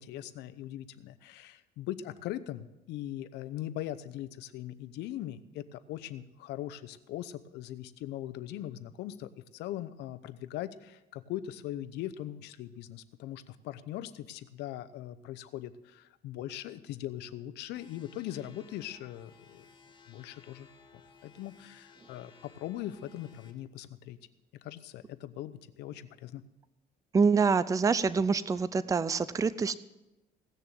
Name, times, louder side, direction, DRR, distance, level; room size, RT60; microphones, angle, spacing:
voice 1, 0.0-19.6 20.1-20.7 21.2-24.2 24.6-26.4, left 13 dB, 85° left, 13 dB, 0.8 m, -40 dB
sound 1, 17.7-23.5, left 5 dB, 30° left, 2.5 m, -58 dB
voice 2, 27.1-29.8, right 5 dB, 20° right, 16 dB, 0.5 m, -26 dB
17.5 x 6.8 x 7.6 m, 0.98 s
cardioid pair, 110°, 17 cm